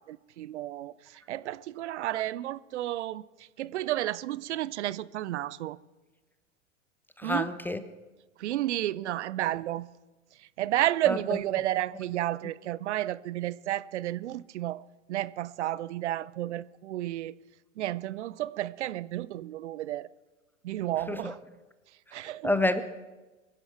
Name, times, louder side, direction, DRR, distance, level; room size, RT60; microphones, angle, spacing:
voice 1, 0.0-5.8 7.2-7.5 8.4-9.9 10.4-17.3 17.8-20.1 20.6-21.4 22.1-22.5, right 14 dB, 65° right, 0.6 m, -32 dB
voice 2, 7.2-7.8 11.1-11.4 21.1-21.3 22.4-22.8, left 2 dB, 5° left, 0.5 m, -28 dB
23.5 x 10.5 x 4.5 m
figure-of-eight pair, 90°, 38 cm